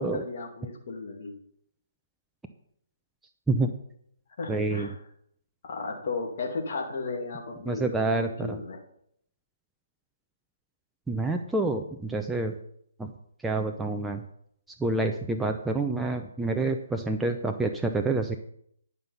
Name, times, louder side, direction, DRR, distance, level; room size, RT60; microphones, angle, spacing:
voice 1, 0.0-1.3 4.4-4.9 5.6-8.8, left 3 dB, 50° left, 1 dB, 2.4 m, -35 dB
voice 2, 4.5-4.9 7.6-8.6 11.1-12.6 13.0-13.1 13.4-14.2 14.8-18.4, right 2 dB, 5° right, 3 dB, 0.6 m, -28 dB
11.0 x 5.5 x 5.7 m, 0.69 s
figure-of-eight pair, 140°, 0 cm